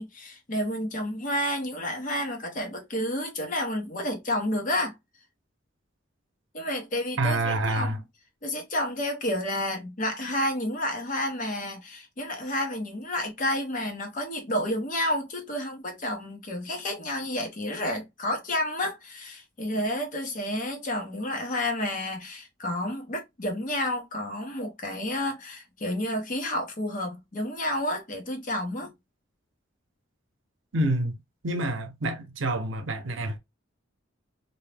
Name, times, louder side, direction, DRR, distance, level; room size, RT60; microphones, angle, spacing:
voice 1, 0.0-4.9 6.5-8.0 8.4-28.9, left 1 dB, 40° left, 0.8 m, -30 dB
voice 2, 7.2-8.0 30.7-31.2 31.4-33.4, right 1 dB, 75° right, 0.7 m, -27 dB
2.7 x 2.1 x 3.3 m
head